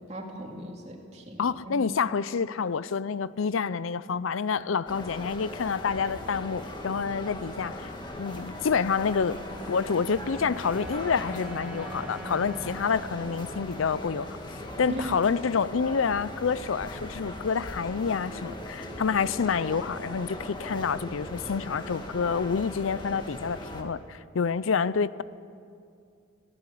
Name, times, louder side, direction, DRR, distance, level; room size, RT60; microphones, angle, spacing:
voice 1, 0.1-1.9 14.9-15.1, right 1 dB, 35° right, 1 dB, 2.6 m, -38 dB
voice 2, 1.4-7.9 8.2-9.4 9.7-14.4 14.8-25.2, left 5 dB, 85° left, 17 dB, 0.5 m, -28 dB
sound 1, 4.9-23.8, left 1 dB, 20° left, 1.9 m, -39 dB
sound 2, 8.9-15.3, right 2 dB, 5° right, 1.1 m, -46 dB
21.5 x 16.5 x 8.5 m, 2.4 s
head